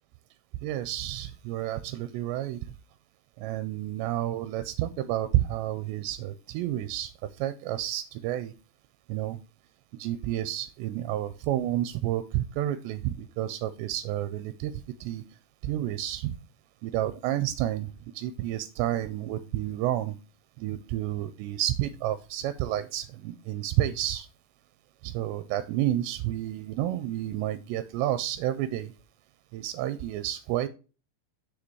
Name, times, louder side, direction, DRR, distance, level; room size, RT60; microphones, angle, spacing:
voice 1, 0.6-2.6 3.4-7.1 7.4-8.5 9.1-9.4 10.0-14.7 15.0-15.2 15.6-16.3 16.8-20.2 20.6-24.3 25.0-28.9 29.5-30.7, right 13 dB, 85° right, 12 dB, 2.7 m, -30 dB
7.4 x 6.8 x 3.1 m, 0.33 s
omnidirectional pair, 5.0 m